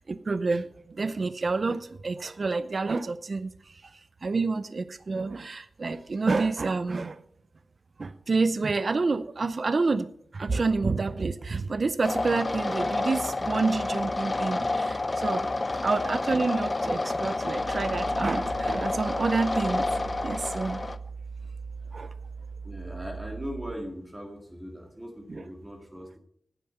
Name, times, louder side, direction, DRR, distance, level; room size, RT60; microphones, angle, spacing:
voice 1, 0.0-7.2 8.0-10.1 10.3-15.5 15.8-19.9 20.2-20.8 21.9-22.1 25.3-25.4, right 3 dB, 45° right, 13 dB, 0.5 m, -28 dB
sound 1, 12.0-21.0, left 2 dB, 30° left, 0.6 m, -29 dB
sound 2, 17.6-23.8, right 5 dB, 90° right, 1.5 m, -40 dB
voice 2, 22.6-26.2, equal, 15° right, 0 dB, 2.0 m, -39 dB
10.5 x 9.4 x 5.5 m, 0.64 s
wide cardioid pair, 135°, 0 cm